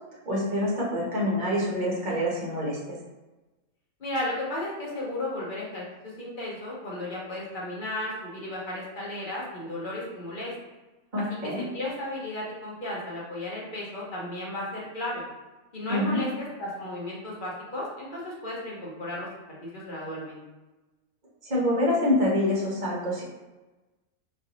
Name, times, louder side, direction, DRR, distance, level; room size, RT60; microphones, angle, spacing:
voice 1, 0.3-2.8 11.1-11.6 15.9-16.2 21.4-23.2, left 1 dB, 35° right, -4 dB, 1.0 m, -26 dB
voice 2, 4.0-10.5 11.2-11.3 11.6-15.2 15.7-20.4, left 1 dB, 45° left, -5 dB, 0.8 m, -34 dB
4.0 x 2.6 x 2.9 m, 1.1 s
omnidirectional pair, 1.5 m